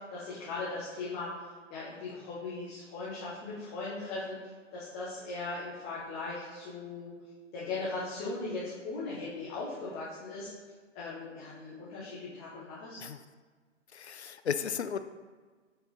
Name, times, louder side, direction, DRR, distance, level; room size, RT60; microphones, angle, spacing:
voice 1, 0.0-1.4 1.7-4.4 4.7-7.1 7.5-10.5 10.9-13.0, left 3 dB, 10° left, -8 dB, 0.6 m, -38 dB
voice 2, 13.9-15.0, left 7 dB, 60° left, 11 dB, 0.5 m, -34 dB
7.1 x 4.3 x 3.9 m, 1.4 s
figure-of-eight pair, 130°, 37 cm